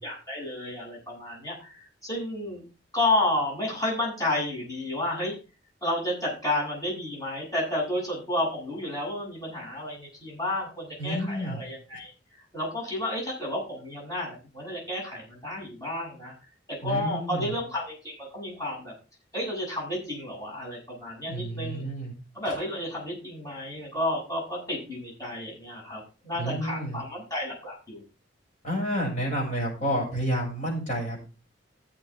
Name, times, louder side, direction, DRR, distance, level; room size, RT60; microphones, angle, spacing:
voice 1, 0.0-2.6 2.9-5.3 5.8-12.1 12.5-16.3 16.7-18.9 19.3-21.9 22.3-28.0, left 1 dB, 20° left, -3 dB, 7.7 m, -31 dB
voice 2, 11.0-11.6 16.8-17.5 21.3-22.1 26.3-27.0 28.6-31.3, equal, 45° left, -2 dB, 6.7 m, -30 dB
15.0 x 8.6 x 3.6 m, 0.33 s
head